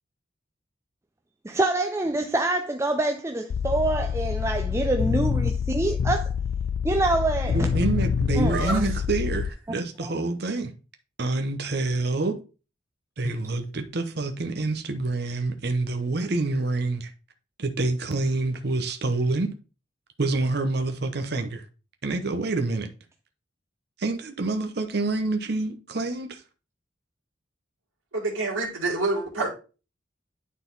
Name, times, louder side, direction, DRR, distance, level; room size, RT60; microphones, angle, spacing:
voice 1, 1.4-6.3 6.8-7.7 8.4-8.9 10.0-10.1, right 2 dB, 15° right, 0.4 m, -26 dB
sound 1, 3.5-9.5, left 6 dB, 85° left, 0.4 m, -26 dB
voice 2, 7.5-10.7 11.2-12.4 13.2-17.1 17.6-19.5 20.2-21.6 22.0-22.9 24.0-26.4, right 3 dB, 55° right, 0.8 m, -27 dB
voice 3, 28.1-29.5, right 2 dB, 85° right, 2.2 m, -27 dB
9.2 x 4.0 x 3.9 m
head